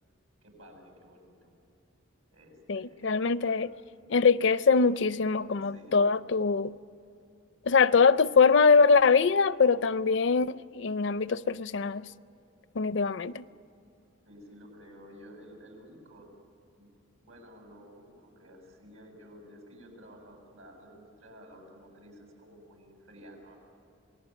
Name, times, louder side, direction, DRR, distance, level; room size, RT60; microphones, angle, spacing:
voice 1, 0.4-1.5 2.3-3.6 5.6-6.0 14.3-16.3 16.8-16.9 17.2-23.6, equal, 85° right, 7.4 m, -52 dB
voice 2, 2.7-3.7 4.1-6.8 7.7-12.0 12.8-13.4, left 5 dB, 60° left, 0.5 m, -23 dB
27.5 x 19.5 x 9.1 m
head